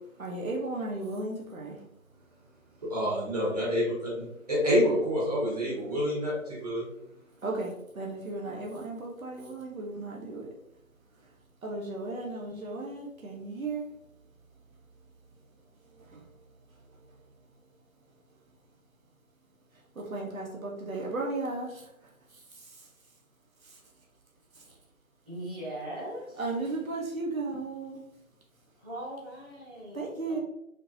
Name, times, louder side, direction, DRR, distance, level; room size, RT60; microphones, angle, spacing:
voice 1, 0.2-1.8 7.4-10.6 11.1-11.3 11.6-13.9 15.8-16.3 16.7-17.2 19.7-22.9 23.6-23.8 24.5-24.8 26.4-28.0 29.9-30.4, right 2 dB, 75° right, -1 dB, 1.3 m, -36 dB
voice 2, 2.8-6.3 6.6-6.9, equal, 30° right, -7 dB, 1.6 m, -27 dB
voice 3, 25.2-26.4 28.8-30.0 30.3-30.4, right 1 dB, 10° right, -14 dB, 1.6 m, -39 dB
5.7 x 3.4 x 2.8 m, 0.82 s
figure-of-eight pair, 170°, 42 cm